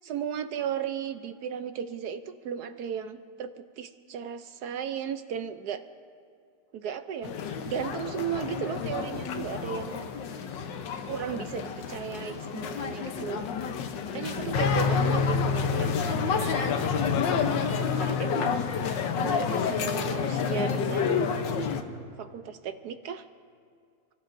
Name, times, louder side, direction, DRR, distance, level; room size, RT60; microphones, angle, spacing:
voice 1, 0.0-5.8 6.7-7.3 7.6-10.1 11.1-13.5 14.1-16.7 18.0-18.6 19.2-21.2 22.2-23.2, right 8 dB, 70° right, 9 dB, 1.1 m, -35 dB
sound 1, 7.2-21.8, left 6 dB, 85° left, 1.5 m, -29 dB
29.5 x 14.5 x 2.6 m, 2.3 s
omnidirectional pair, 1.9 m